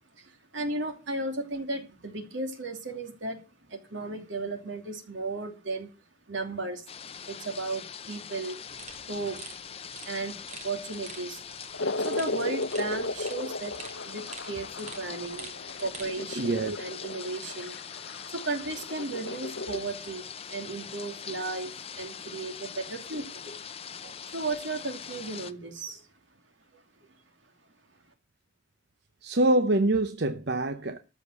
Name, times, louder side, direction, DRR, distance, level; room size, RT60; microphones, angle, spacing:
voice 1, 0.2-3.4 3.7-5.9 6.3-6.9 7.2-8.5 9.1-9.4 10.0-10.4 10.6-11.4 12.0-13.7 14.0-17.8 18.3-23.5 24.3-26.0 26.7-26.8, right 3 dB, 85° right, 2.7 m, -35 dB
sound 1, 6.9-25.5, left 7 dB, 30° left, 0.6 m, -42 dB
sound 2, 8.7-16.1, right 4 dB, 40° right, 2.7 m, -47 dB
sound 3, 11.7-19.8, left 2 dB, 80° left, 0.8 m, -35 dB
voice 2, 16.4-16.8 24.0-24.1 29.2-31.0, right 2 dB, 60° right, 0.8 m, -25 dB
13.5 x 5.3 x 7.8 m
head